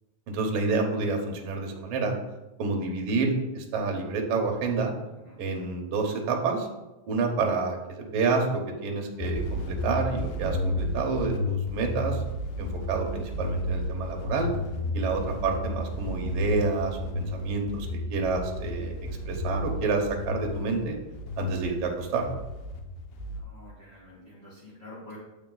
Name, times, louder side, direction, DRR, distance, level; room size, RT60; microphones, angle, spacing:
voice 1, 0.3-2.1 2.6-4.9 5.4-6.7 7.1-12.2 12.6-14.5 14.9-21.0 21.4-22.2, right 4 dB, 65° right, 2 dB, 1.5 m, -28 dB
sound 1, 9.2-23.4, left 1 dB, 85° left, 2.2 m, -32 dB
voice 2, 23.4-25.2, left 2 dB, 30° left, -7 dB, 1.2 m, -47 dB
7.1 x 4.7 x 3.8 m, 1.0 s
omnidirectional pair, 3.6 m